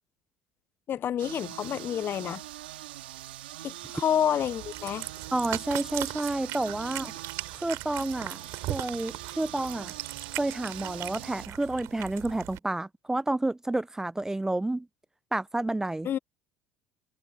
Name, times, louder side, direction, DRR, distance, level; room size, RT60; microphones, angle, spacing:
voice 1, 0.9-2.4 3.6-5.1 16.0-16.2, left 9 dB, 45° left, 0.7 m, -29 dB
sound 1, 1.2-11.5, right 15 dB, 85° right, 2.1 m, -43 dB
Cat, 4.4-12.6, right 17 dB, 60° right, 7.7 m, -39 dB
voice 2, 5.3-7.1 7.6-8.4 8.7-9.9 10.4-14.9 15.3-16.1, right 2 dB, 10° right, 0.6 m, -30 dB
hypercardioid pair, 70°, 5 cm